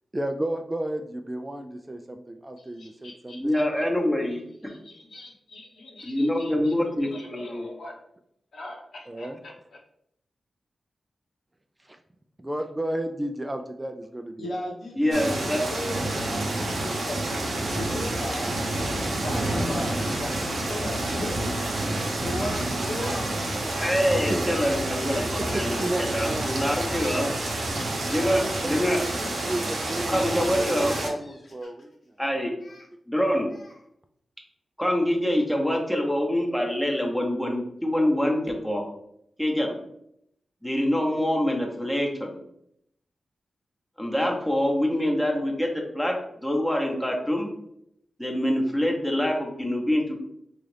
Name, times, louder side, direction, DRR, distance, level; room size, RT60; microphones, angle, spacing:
voice 1, 0.1-3.6 9.1-9.4 11.8-12.0 12.4-14.6 24.3-24.4 25.4-27.1 28.6-32.1, right 1 dB, 20° right, 6 dB, 0.4 m, -33 dB
voice 2, 2.6-3.6 4.6-7.9 8.5-9.8 14.4-18.7 19.2-21.5 22.2-24.9, left 1 dB, 80° left, -2 dB, 1.0 m, -39 dB
voice 3, 3.4-4.4 6.0-7.7 15.0-15.6 23.8-27.3 28.1-29.0 30.1-31.0 32.2-32.5 33.1-33.5 34.8-38.8 39.4-39.7 40.6-42.3 44.0-46.1 46.4-47.5 48.2-50.2, equal, 5° left, 0 dB, 0.9 m, -25 dB
sound 1, 15.1-31.1, right 1 dB, 75° right, 0.8 m, -29 dB
Speech, 20.1-20.3 21.7-21.9 22.4-22.7 22.9-23.9 24.1-24.2 25.8-28.0 29.0-29.2 29.8-32.0 32.6-32.9 33.5-33.9, left 1 dB, 60° left, 0.9 m, -47 dB
3.9 x 2.4 x 3.3 m, 0.75 s
cardioid pair, 60°, 0 cm